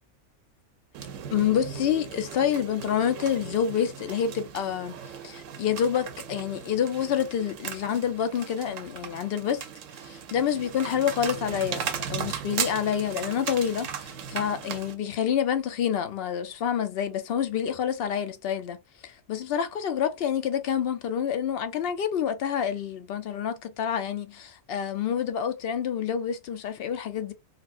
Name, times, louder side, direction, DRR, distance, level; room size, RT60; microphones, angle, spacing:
sound 1, 0.9-14.9, right 8 dB, 75° right, 0.9 m, -37 dB
voice 1, 1.3-9.6 9.9-11.8 12.1-18.8 19.0-27.3, left 8 dB, 65° left, 0.6 m, -28 dB
4.1 x 2.1 x 2.5 m
omnidirectional pair, 1.4 m